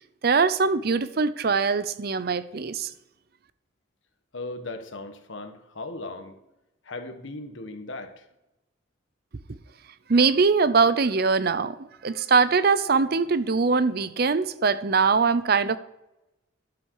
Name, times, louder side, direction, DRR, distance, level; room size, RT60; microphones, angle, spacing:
voice 1, 0.2-2.9 10.1-11.8 12.0-15.8, right 4 dB, 50° right, 0.5 m, -22 dB
voice 2, 4.3-6.3 6.8-8.2, left 2 dB, 70° left, 1.3 m, -37 dB
12.0 x 7.9 x 4.7 m
head